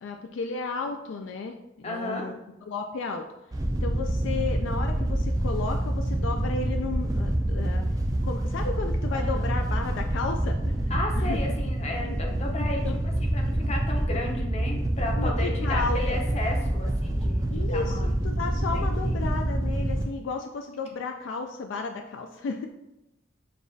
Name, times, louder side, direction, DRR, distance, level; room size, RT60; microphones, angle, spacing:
voice 1, 0.0-2.4 2.7-3.2 3.8-7.8 8.2-10.7 11.2-11.4 12.0-12.2 12.7-12.9 15.1-16.2 17.5-22.7, left 4 dB, 65° left, 4 dB, 0.3 m, -33 dB
voice 2, 1.8-2.3 9.1-9.5 10.9-18.1 18.7-19.2, left 2 dB, 35° left, 1 dB, 0.6 m, -34 dB
Wind / Boat Water vehicle, 3.5-20.0, right 1 dB, 20° right, 0.4 m, -27 dB
6.7 x 2.4 x 2.6 m, 0.94 s
head